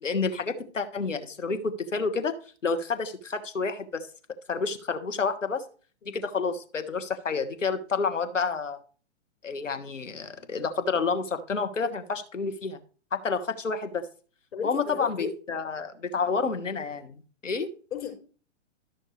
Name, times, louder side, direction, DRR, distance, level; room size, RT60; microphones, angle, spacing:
voice 1, 0.0-2.3 2.6-4.1 4.5-5.6 6.1-8.8 9.4-12.8 13.1-14.0 14.6-17.2 17.4-17.7, left 4 dB, 90° left, 8 dB, 1.5 m, -29 dB
voice 2, 14.5-15.3 17.9-18.1, left 7 dB, 65° left, -1 dB, 5.6 m, -34 dB
13.0 x 6.4 x 3.2 m, 0.40 s
hypercardioid pair, 125°, 37 cm